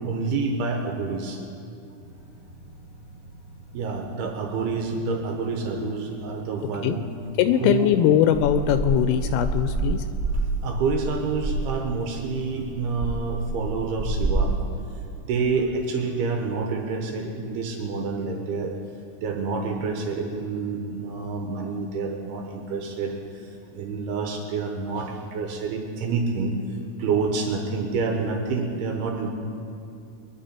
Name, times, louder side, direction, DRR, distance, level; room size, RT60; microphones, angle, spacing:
voice 1, 0.0-1.4 3.7-7.0 7.5-7.9 10.6-14.5 15.3-18.7 19.2-29.3, right 4 dB, 85° right, 2 dB, 2.3 m, -28 dB
sound 1, 2.0-15.1, right 2 dB, 50° left, 1.8 m, -47 dB
voice 2, 7.4-10.0, left 10 dB, 85° left, 9 dB, 3.0 m, -21 dB
sound 2, 8.3-14.4, right 2 dB, 10° right, 2.7 m, -28 dB
23.0 x 11.0 x 4.4 m, 2.6 s
omnidirectional pair, 5.9 m